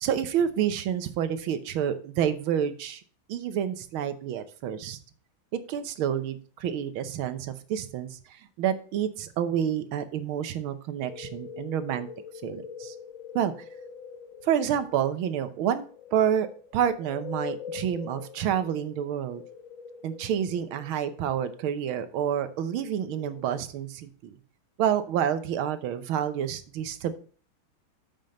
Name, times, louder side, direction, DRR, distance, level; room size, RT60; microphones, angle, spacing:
voice 1, 0.0-3.0 3.3-5.0 5.7-8.2 8.6-12.1 12.4-13.0 13.4-13.5 14.4-15.9 16.1-16.5 16.7-19.4 20.0-24.4 24.8-27.1, right 9 dB, 80° right, 11 dB, 1.7 m, -28 dB
sound 1, 11.0-23.6, left 6 dB, 50° left, 1.0 m, -44 dB
7.7 x 5.2 x 5.1 m, 0.42 s
omnidirectional pair, 2.3 m